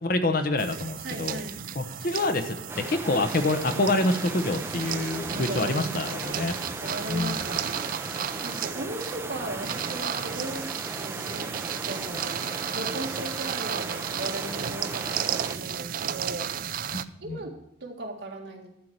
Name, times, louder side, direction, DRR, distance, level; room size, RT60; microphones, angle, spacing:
voice 1, 0.0-1.4 1.7-6.5 7.1-7.5 16.9-17.4, left 2 dB, 50° left, 8 dB, 1.0 m, -27 dB
sound 1, 0.6-17.0, right 9 dB, 45° right, 0.4 m, -34 dB
voice 2, 1.0-1.6 5.3-6.5 6.8-7.7 8.4-11.5 11.9-12.4 12.7-16.5 17.2-18.7, right 1 dB, 65° right, 1 dB, 1.9 m, -37 dB
sound 2, 2.7-15.6, right 2 dB, 15° right, 0.7 m, -37 dB
11.5 x 4.7 x 8.0 m, 0.83 s
head